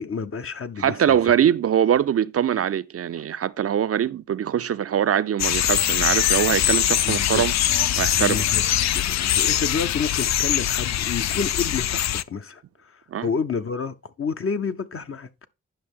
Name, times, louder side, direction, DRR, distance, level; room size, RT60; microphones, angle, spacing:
voice 1, 0.0-1.4 7.0-7.5 8.2-15.5, left 5 dB, 45° left, 0.8 m, -30 dB
voice 2, 0.8-7.5 8.0-8.4 13.1-13.3, right 9 dB, 50° right, 0.5 m, -22 dB
sound 1, 5.4-12.2, left 11 dB, 65° left, 0.4 m, -22 dB
10.5 x 5.6 x 3.6 m
supercardioid pair, 45°, 30 cm